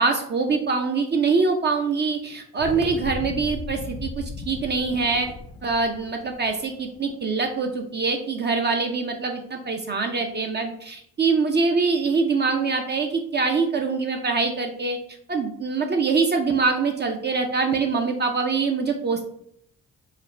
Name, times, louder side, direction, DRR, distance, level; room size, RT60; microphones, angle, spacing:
voice 1, 0.0-5.3 5.6-15.0 15.3-19.3, right 4 dB, 35° right, 3 dB, 0.5 m, -24 dB
sound 1, 2.6-7.2, left 3 dB, 85° left, 0.8 m, -36 dB
4.8 x 2.1 x 3.1 m, 0.68 s
cardioid pair, 90°, 30 cm